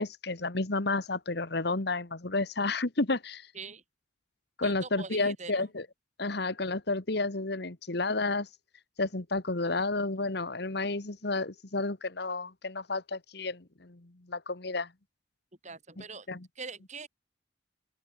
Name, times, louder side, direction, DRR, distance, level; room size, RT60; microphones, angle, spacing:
voice 1, 0.0-3.5 4.6-5.8 6.2-8.5 9.0-14.9 16.3-16.4, left 3 dB, 60° left, 1.6 m, -31 dB
voice 2, 4.6-5.7 15.6-16.3 16.5-17.1, right 4 dB, 40° right, 6.8 m, -43 dB
open air
head